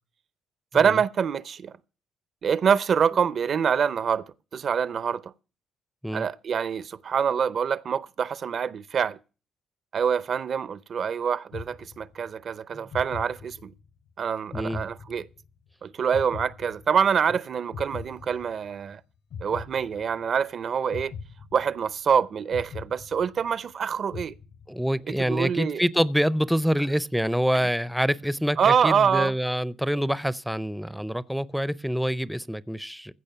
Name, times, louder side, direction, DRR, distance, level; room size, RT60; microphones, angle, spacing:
voice 1, 0.7-1.7 2.4-5.3 6.1-9.2 9.9-13.7 14.2-15.3 15.8-19.0 19.4-21.1 21.5-24.3 25.1-25.8 28.6-29.3, right 7 dB, 55° right, 0.5 m, -25 dB
sound 1, 11.5-12.4 12.9-14.0 14.5-15.7 16.1-17.3 17.7-18.9 19.3-20.4 20.9-22.1 22.5-23.7 24.1-25.0, left 6 dB, 85° left, 4.2 m, -41 dB
voice 2, 24.7-33.1, equal, ahead, 0.5 m, -26 dB
15.5 x 5.2 x 6.7 m
cardioid pair, 90°, 0 cm